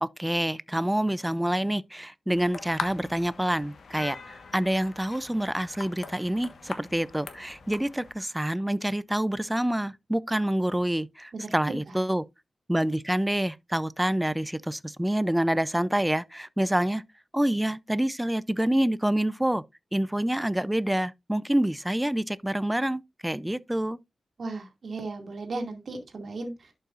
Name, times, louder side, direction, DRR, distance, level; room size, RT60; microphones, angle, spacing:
voice 1, 0.0-12.2 12.7-17.0 17.3-19.6 19.9-24.0, right 1 dB, 10° right, 0.5 m, -27 dB
sound 1, 2.3-8.1, left 4 dB, 85° left, 1.3 m, -41 dB
voice 2, 11.3-11.8 24.4-26.7, right 3 dB, 65° right, 2.2 m, -36 dB
11.5 x 5.5 x 2.5 m
wide cardioid pair, 110°, 0 cm